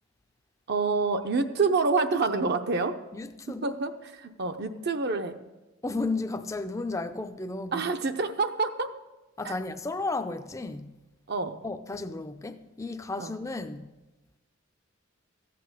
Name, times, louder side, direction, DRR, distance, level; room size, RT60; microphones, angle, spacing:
voice 1, 0.7-2.9 3.6-5.4 7.7-8.9 9.4-9.5 11.3-11.6 13.2-13.3, right 4 dB, 55° right, 0.7 m, -27 dB
voice 2, 3.1-3.8 5.8-7.9 9.4-11.0 11.6-13.9, left 3 dB, 15° left, 0.5 m, -33 dB
14.5 x 8.6 x 6.6 m
head